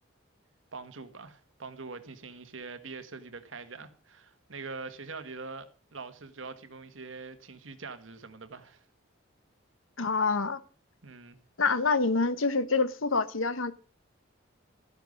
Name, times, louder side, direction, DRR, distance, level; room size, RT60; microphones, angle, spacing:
voice 1, 0.7-8.8 11.0-11.4, right 4 dB, 75° right, 1.5 m, -43 dB
voice 2, 10.0-10.6 11.6-13.7, left 4 dB, 85° left, 1.1 m, -26 dB
12.5 x 10.5 x 5.2 m
head